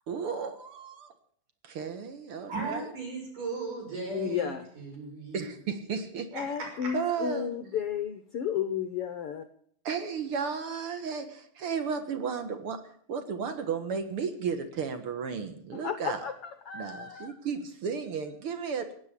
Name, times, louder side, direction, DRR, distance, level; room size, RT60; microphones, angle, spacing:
voice 1, 0.1-1.1 1.6-2.9 5.3-6.3 6.9-7.5 9.8-12.8 13.1-16.3 16.7-18.9, right 6 dB, 50° right, 8 dB, 2.1 m, -34 dB
voice 2, 2.5-5.5 6.3-6.4, right 4 dB, 70° right, 0 dB, 7.7 m, -36 dB
voice 3, 4.1-4.6 6.3-9.5 15.7-17.3, left 8 dB, 70° left, 9 dB, 1.4 m, -33 dB
17.5 x 9.9 x 8.4 m, 0.62 s
omnidirectional pair, 3.8 m